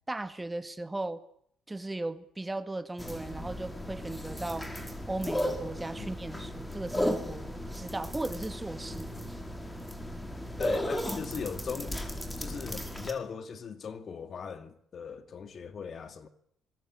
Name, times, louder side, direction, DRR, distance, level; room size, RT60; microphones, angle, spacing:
voice 1, 0.1-1.2 1.7-4.7 5.1-9.1, right 2 dB, 15° right, 2.0 m, -37 dB
sound 1, 3.0-13.1, equal, 15° left, 5.3 m, -35 dB
voice 2, 10.6-12.0 12.4-16.3, left 6 dB, 55° left, 2.4 m, -39 dB
26.0 x 21.0 x 8.8 m
supercardioid pair, 60°, 0 cm